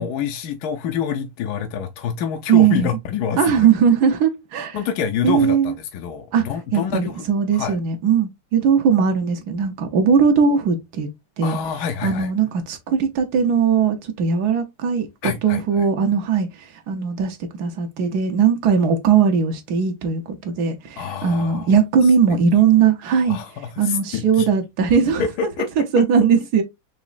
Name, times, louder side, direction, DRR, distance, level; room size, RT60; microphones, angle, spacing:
voice 1, 0.0-3.7 4.7-7.1 7.5-7.8 11.4-12.3 15.2-15.8 21.0-21.7 23.3-24.5 25.2-25.7, left 7 dB, 70° left, 1.0 m, -27 dB
voice 2, 2.5-2.9 3.4-4.8 5.2-5.7 6.3-6.5 6.7-11.1 11.4-11.6 12.0-23.4 23.8-25.2 25.8-26.6, right 6 dB, 65° right, 1.2 m, -19 dB
5.0 x 3.0 x 2.4 m
omnidirectional pair, 2.0 m